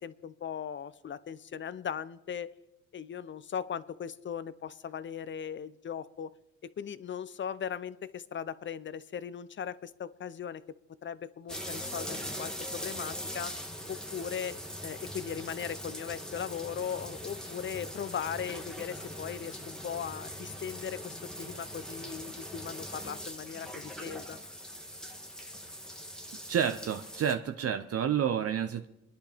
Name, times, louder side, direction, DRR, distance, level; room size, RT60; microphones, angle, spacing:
voice 1, 0.0-2.5 2.9-6.3 6.6-10.6 11.0-13.5 13.9-14.6 14.8-24.4, left 8 dB, 40° left, 16 dB, 0.6 m, -38 dB
sound 1, 11.5-27.3, equal, ahead, 1.5 m, -41 dB
voice 2, 26.5-28.9, right 8 dB, 50° right, 8 dB, 0.7 m, -29 dB
25.5 x 10.5 x 3.4 m, 0.91 s
cardioid pair, 90°, 30 cm